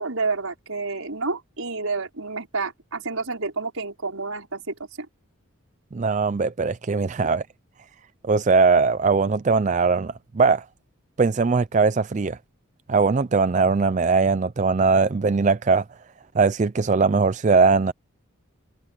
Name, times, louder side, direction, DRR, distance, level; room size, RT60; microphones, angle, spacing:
voice 1, 0.0-5.1 7.2-7.4, right 3 dB, 85° right, 5.3 m, -29 dB
voice 2, 5.9-7.4 8.2-10.6 11.2-12.4 12.9-15.8 16.3-17.9, right 4 dB, 35° right, 0.4 m, -20 dB
head